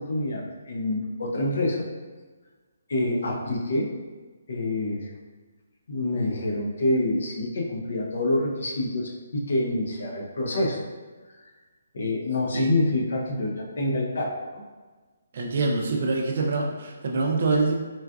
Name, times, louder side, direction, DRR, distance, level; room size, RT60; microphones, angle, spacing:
voice 1, 0.0-1.9 2.9-3.9 4.5-5.1 5.9-10.8 11.4-11.5 11.9-14.6, left 1 dB, 60° left, 0 dB, 0.6 m, -27 dB
voice 2, 15.3-17.8, right 3 dB, 45° right, 0 dB, 0.4 m, -25 dB
3.8 x 2.4 x 2.3 m, 1.3 s
hypercardioid pair, 170°, 0 cm